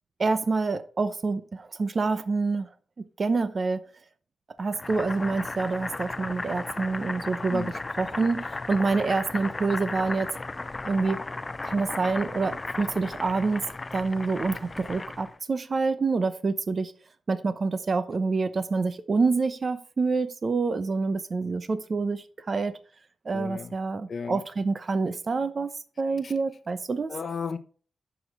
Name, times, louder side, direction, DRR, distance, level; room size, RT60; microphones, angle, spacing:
voice 1, 0.2-2.7 3.2-3.8 4.6-10.3 10.8-11.2 11.6-13.6 13.9-16.9 17.3-22.7 23.2-25.7 26.0-27.1, right 4 dB, 35° right, 0.8 m, -27 dB
Boiling, 4.7-15.4, left 3 dB, 20° left, 0.4 m, -35 dB
voice 2, 23.3-23.7 24.1-24.4 26.2-26.3 27.1-27.6, left 5 dB, 45° left, 1.0 m, -33 dB
10.5 x 7.1 x 4.7 m
wide cardioid pair, 140°, 0 cm